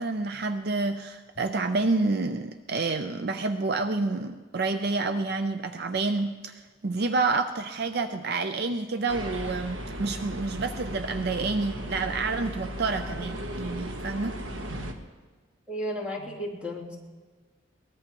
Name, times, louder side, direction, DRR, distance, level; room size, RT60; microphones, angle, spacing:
voice 1, 0.0-14.4, right 3 dB, 55° right, 8 dB, 0.5 m, -29 dB
sound 1, 9.1-14.9, equal, 80° right, 1.3 m, -36 dB
voice 2, 15.7-17.0, equal, 5° right, -4 dB, 3.1 m, -33 dB
22.5 x 19.0 x 3.0 m, 1.4 s
head